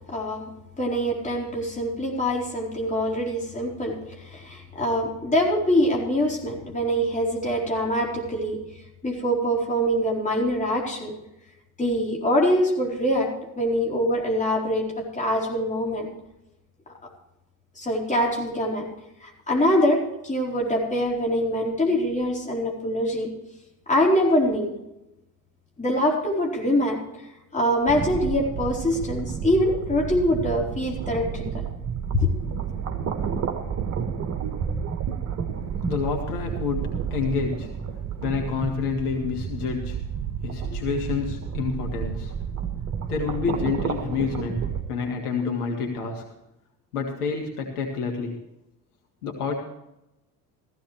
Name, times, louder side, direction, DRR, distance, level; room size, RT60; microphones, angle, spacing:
voice 1, 0.1-0.5 0.8-8.7 9.0-11.1 11.8-16.1 17.8-18.9 19.2-23.4 23.9-24.7 25.8-27.0 27.5-31.6 32.1-32.3, equal, 15° left, -1 dB, 4.2 m, -24 dB
sound 1, 27.9-44.8, right 7 dB, 35° right, 1.6 m, -31 dB
voice 2, 35.8-40.0 40.4-42.5 43.1-46.3 46.9-48.4 49.2-49.5, left 5 dB, 70° left, 1 dB, 2.0 m, -28 dB
15.0 x 15.0 x 3.2 m, 0.91 s
figure-of-eight pair, 60°, 47 cm